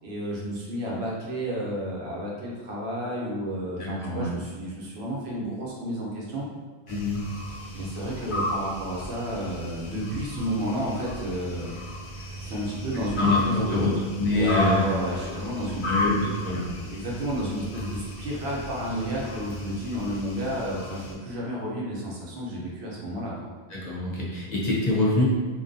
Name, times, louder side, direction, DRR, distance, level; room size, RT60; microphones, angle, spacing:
voice 1, 0.0-6.5 7.7-11.8 12.4-14.0 14.3-16.0 16.3-16.4 16.9-23.5, equal, 80° right, -4 dB, 1.0 m, -31 dB
voice 2, 3.8-4.3 6.9-7.2 13.2-13.9 14.2-14.8 15.8-16.7 23.7-25.2, left 2 dB, 50° left, -5 dB, 0.7 m, -25 dB
sound 1, 6.9-21.1, left 1 dB, 80° left, 0.8 m, -34 dB
2.6 x 2.2 x 2.5 m, 1.5 s
omnidirectional pair, 1.1 m